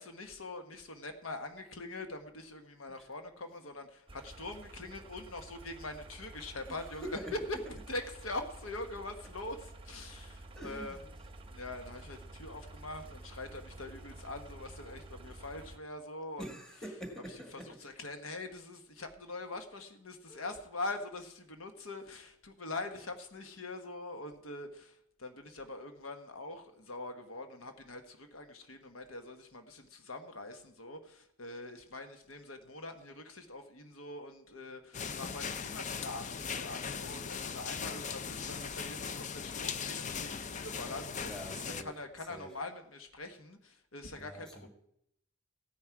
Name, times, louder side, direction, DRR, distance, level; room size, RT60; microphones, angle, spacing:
voice 1, 0.0-7.1 7.7-11.0 11.5-16.5 17.8-41.4 41.8-44.7, left 2 dB, 75° left, 6 dB, 1.3 m, -44 dB
sound 1, 4.1-15.8, right 2 dB, 25° right, 0.8 m, -50 dB
voice 2, 6.7-7.3 10.6-11.1 16.4-17.8 20.3-20.5 41.2-42.0 42.3-42.5 44.1-44.7, right 1 dB, 5° left, 3 dB, 1.8 m, -45 dB
sound 2, 34.9-41.8, left 6 dB, 35° left, 0.5 m, -39 dB
15.0 x 9.6 x 4.7 m, 0.73 s
head